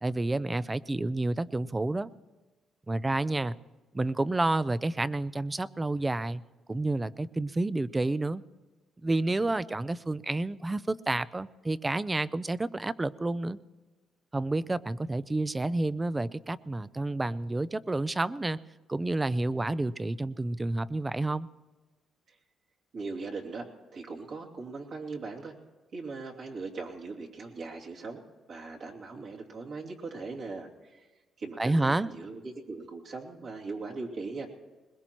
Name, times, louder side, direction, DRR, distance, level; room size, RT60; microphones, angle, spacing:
voice 1, 0.0-2.1 2.9-3.6 3.9-6.4 6.7-8.4 9.0-13.6 14.3-18.6 18.9-21.5 31.6-32.1, right 2 dB, 20° right, 17 dB, 0.4 m, -29 dB
voice 2, 22.9-23.7 23.9-25.5 25.9-28.2 28.5-31.1 31.4-34.5, right 3 dB, 60° right, -1 dB, 2.7 m, -39 dB
21.5 x 20.5 x 3.0 m, 1.2 s
cardioid pair, 90°, 0 cm